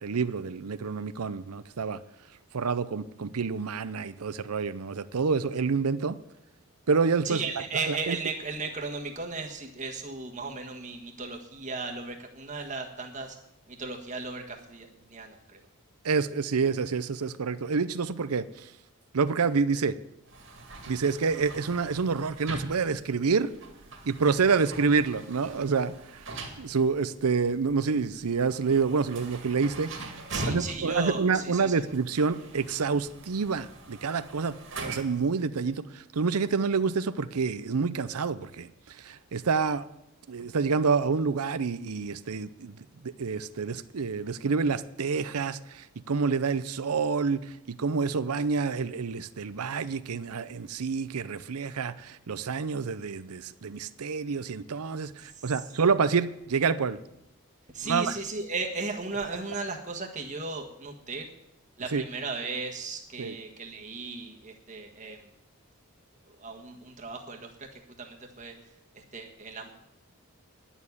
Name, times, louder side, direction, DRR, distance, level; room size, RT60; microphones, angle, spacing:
voice 1, 0.0-2.0 2.5-6.2 6.9-7.4 7.9-8.2 16.0-18.7 19.1-20.0 20.9-23.5 24.0-26.2 26.6-30.0 30.5-34.6 34.8-39.8 40.3-42.7 43.0-57.0 57.8-58.1 61.9-62.0 63.2-63.3, right 5 dB, 90° right, 14 dB, 0.6 m, -28 dB
voice 2, 7.2-13.4 13.7-15.6 30.3-31.7 55.2-55.6 57.7-61.3 61.8-65.3 66.3-68.5 68.9-69.7, right 3 dB, 35° right, 2 dB, 1.6 m, -36 dB
sound 1, 20.3-35.3, right 2 dB, 55° right, 2.2 m, -42 dB
11.0 x 7.2 x 9.7 m, 0.83 s
head